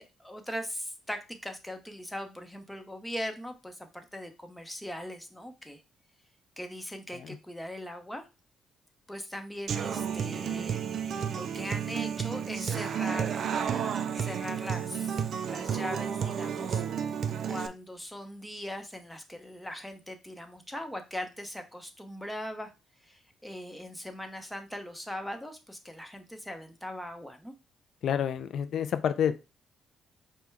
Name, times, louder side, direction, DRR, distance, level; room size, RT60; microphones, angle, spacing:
voice 1, 0.0-5.8 6.6-8.3 9.1-10.8 11.3-13.5 14.2-16.8 17.4-22.7 23.0-27.5, equal, 5° left, 5 dB, 0.8 m, -40 dB
Human voice / Acoustic guitar, 9.7-17.7, right 8 dB, 60° right, 0.4 m, -32 dB
voice 2, 28.0-29.4, left 8 dB, 70° left, 11 dB, 0.3 m, -29 dB
5.2 x 2.2 x 4.6 m, 0.28 s
cardioid pair, 90°, 0 cm